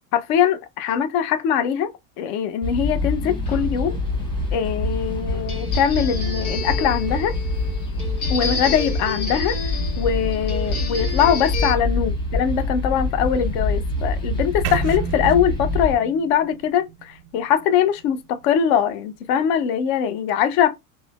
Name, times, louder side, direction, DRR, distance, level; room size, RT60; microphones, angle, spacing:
voice 1, 0.1-1.9 2.2-4.0 4.5-7.3 8.3-9.6 10.0-20.8, left 8 dB, 50° left, 0.5 m, -22 dB
sound 1, 2.6-16.0, left 2 dB, 10° left, 1.2 m, -25 dB
sound 2, 3.5-11.7, left 3 dB, 80° left, 1.0 m, -32 dB
sound 3, 14.6-18.6, right 10 dB, 35° right, 0.4 m, -34 dB
3.7 x 2.0 x 2.3 m
hypercardioid pair, 80°, 43 cm